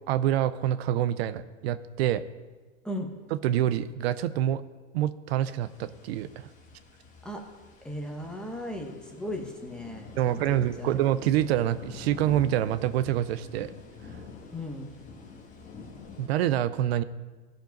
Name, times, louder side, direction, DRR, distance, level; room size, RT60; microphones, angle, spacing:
voice 1, 0.1-2.2 3.3-4.6 4.9-6.5 10.1-13.7 16.2-17.0, right 12 dB, 55° right, 14 dB, 0.6 m, -26 dB
sound 1, 5.6-16.3, left 4 dB, 20° left, 1.3 m, -47 dB
voice 2, 7.8-10.9 14.5-14.9, left 1 dB, ahead, 1 dB, 0.9 m, -37 dB
15.5 x 5.2 x 5.2 m, 1.3 s
supercardioid pair, 135°, 37 cm